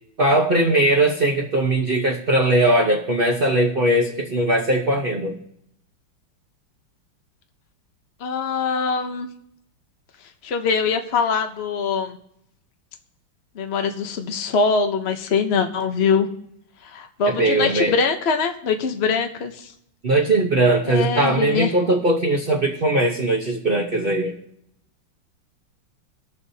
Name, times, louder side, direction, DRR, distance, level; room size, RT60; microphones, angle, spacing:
voice 1, 0.2-5.4 17.3-17.9 20.0-24.4, right 1 dB, 45° right, 0 dB, 0.7 m, -20 dB
voice 2, 8.2-9.3 10.4-12.2 13.5-16.3 16.8-19.7 20.9-21.7, left 5 dB, 70° left, 5 dB, 0.6 m, -23 dB
20.0 x 7.2 x 2.8 m, 0.74 s
omnidirectional pair, 2.4 m